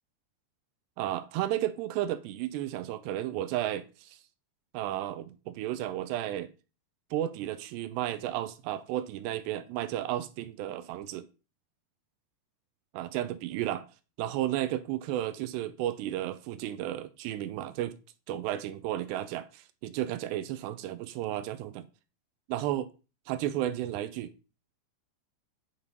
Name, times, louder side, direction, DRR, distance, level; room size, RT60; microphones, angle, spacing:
voice 1, 1.0-4.2 4.7-6.5 7.1-11.3 12.9-13.9 14.2-18.0 18.3-21.9 22.5-22.9 23.3-24.3, right 13 dB, 80° right, 2.6 m, -33 dB
9.6 x 5.5 x 5.2 m
omnidirectional pair, 5.3 m